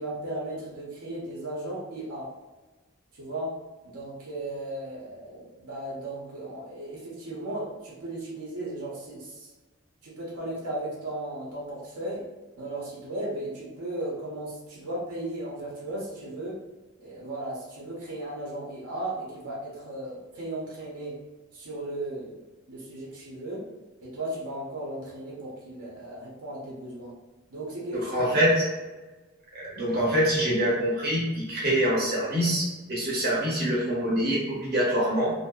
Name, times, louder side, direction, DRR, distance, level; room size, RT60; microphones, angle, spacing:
voice 1, 0.0-2.3 3.2-3.5 3.8-9.5 10.0-12.2 12.6-16.6 17.0-21.2 21.5-22.4 22.7-23.6 24.0-27.1 27.5-28.1, right 1 dB, 85° right, -4 dB, 0.8 m, -36 dB
voice 2, 27.9-28.6 29.5-32.6 32.9-35.3, equal, 45° right, -6 dB, 0.7 m, -25 dB
2.6 x 2.1 x 2.3 m, 1.2 s
head